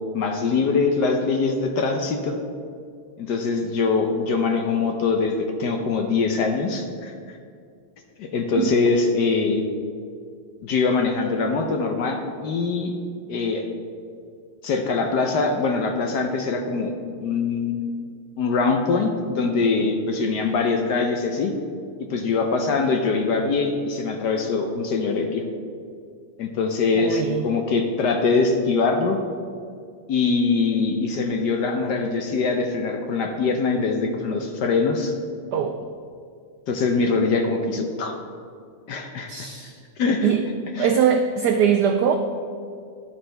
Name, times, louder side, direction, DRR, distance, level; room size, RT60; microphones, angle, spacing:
voice 1, 0.1-2.4 3.2-7.4 8.2-9.6 10.6-12.9 13.3-13.6 14.6-17.8 18.4-21.5 22.1-25.4 26.4-29.2 30.1-35.1 36.7-38.1 38.9-39.5 40.0-40.3 40.7-41.0, left 4 dB, 65° left, 4 dB, 1.1 m, -23 dB
voice 2, 27.0-27.4 35.5-35.9 39.3-39.7 40.2-40.4 40.8-42.1, right 8 dB, 90° right, 6 dB, 0.9 m, -21 dB
11.5 x 8.7 x 3.3 m, 2.3 s
omnidirectional pair, 2.3 m